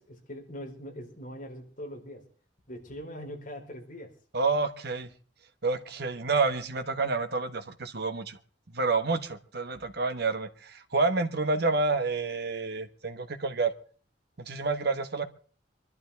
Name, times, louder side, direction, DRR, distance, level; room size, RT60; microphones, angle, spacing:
voice 1, 0.0-2.2 2.7-4.1, equal, 45° left, 2 dB, 4.1 m, -42 dB
voice 2, 4.3-5.1 5.6-8.4 8.7-13.7 14.4-15.3, right 3 dB, 60° right, 8 dB, 1.2 m, -29 dB
24.5 x 12.0 x 3.4 m, 0.42 s
head